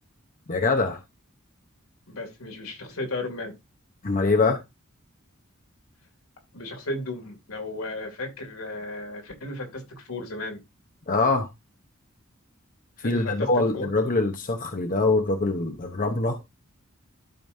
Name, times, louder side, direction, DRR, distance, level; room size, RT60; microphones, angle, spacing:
voice 1, 0.5-1.0 4.0-4.6 11.1-11.5 13.0-16.4, left 3 dB, 40° left, 1.0 m, -24 dB
voice 2, 2.1-3.5 6.5-10.6 13.0-13.5 13.7-13.9, left 2 dB, 80° left, 2.8 m, -34 dB
12.5 x 5.2 x 2.7 m
head